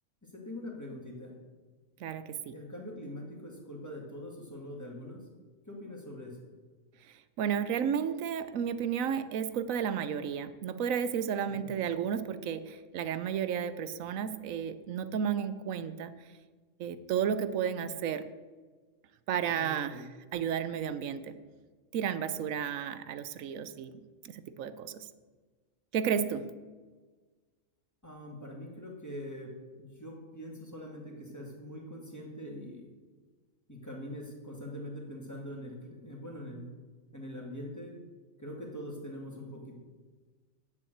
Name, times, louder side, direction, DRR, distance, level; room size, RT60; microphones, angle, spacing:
voice 1, 0.3-1.4 2.5-5.2 5.6-6.4 11.5-11.7 19.5-20.0 28.0-32.9 33.7-36.7 37.1-38.0 38.4-39.7, left 1 dB, 15° left, -1 dB, 2.3 m, -43 dB
voice 2, 2.0-2.5 7.4-16.1 16.8-18.2 19.3-20.0 20.3-21.3 21.9-23.9 24.2-25.1 25.9-26.5, right 8 dB, 90° right, 12 dB, 1.1 m, -32 dB
9.4 x 7.3 x 7.8 m, 1.4 s
omnidirectional pair, 1.4 m